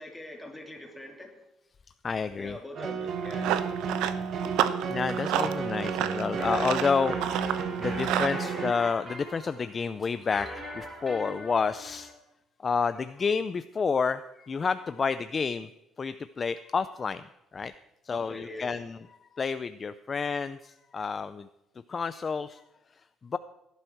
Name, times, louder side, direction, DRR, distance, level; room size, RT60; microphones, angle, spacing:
voice 1, 0.0-1.4 2.4-3.5 18.1-18.8, left 1 dB, 5° left, 1 dB, 2.9 m, -43 dB
voice 2, 2.0-2.6 4.9-7.2 7.8-12.1 12.6-15.7 16.0-17.2 17.5-17.7 18.0-19.0 19.4-21.5 21.9-22.6 23.2-23.4, left 5 dB, 30° left, 13 dB, 0.4 m, -29 dB
sound 1, 2.7-8.7, right 6 dB, 50° right, 1.5 m, -32 dB
Run, 3.0-8.4, right 11 dB, 85° right, 0.9 m, -31 dB
sound 2, 6.4-12.1, equal, 15° right, 4.1 m, -41 dB
17.5 x 11.5 x 4.6 m, 0.93 s
cardioid pair, 140°, 0 cm